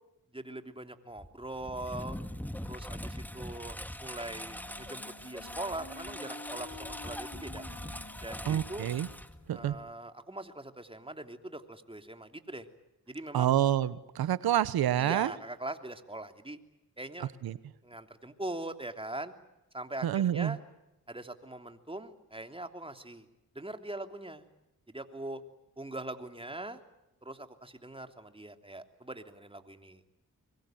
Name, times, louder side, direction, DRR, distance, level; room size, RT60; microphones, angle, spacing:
voice 1, 0.3-2.2 2.6-7.7 8.2-8.9 9.5-12.7 13.1-13.6 15.0-16.6 17.0-17.3 17.8-19.3 19.7-20.6 21.1-23.3 23.5-24.4 24.9-25.4 25.8-26.8 27.2-30.0, right 1 dB, 15° right, 6 dB, 3.1 m, -42 dB
Engine, 1.2-9.9, equal, 5° left, 1.8 m, -42 dB
Wind instrument woodwind instrument, 3.9-10.0, left 3 dB, 55° left, 5.8 m, -50 dB
voice 2, 8.4-9.1 9.5-9.8 13.3-15.3 17.4-17.6 20.0-20.6, right 11 dB, 90° right, 17 dB, 1.0 m, -28 dB
24.5 x 23.0 x 9.2 m, 0.92 s
cardioid pair, 50°, 36 cm